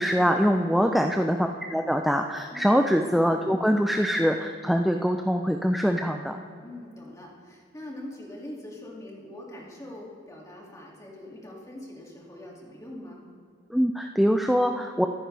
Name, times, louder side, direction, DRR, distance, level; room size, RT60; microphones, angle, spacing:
voice 1, 0.0-6.4 13.7-15.1, equal, ahead, 4 dB, 0.5 m, -23 dB
voice 2, 2.5-2.8 6.6-13.2, left 1 dB, 15° left, -2 dB, 2.5 m, -43 dB
24.5 x 9.9 x 3.4 m, 2.4 s
head